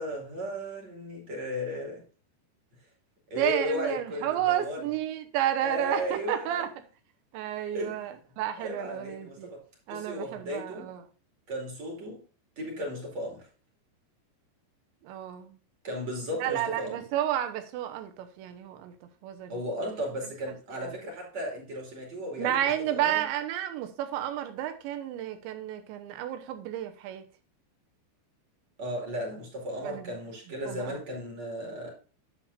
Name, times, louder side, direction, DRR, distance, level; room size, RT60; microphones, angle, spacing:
voice 1, 0.0-2.0 3.3-4.9 5.6-6.6 7.7-8.1 8.6-9.6 9.9-10.9 11.5-12.2 12.6-13.5 15.8-17.0 19.5-23.2 28.8-31.9, equal, 45° right, 3.1 m, -35 dB
voice 2, 3.4-6.7 7.3-9.5 9.9-11.0 15.0-15.5 16.4-18.9 19.2-19.6 20.8-21.0 22.4-27.2 29.8-30.1 30.7-31.0, right 11 dB, 90° right, 3.3 m, -31 dB
9.9 x 7.2 x 2.5 m
omnidirectional pair, 5.1 m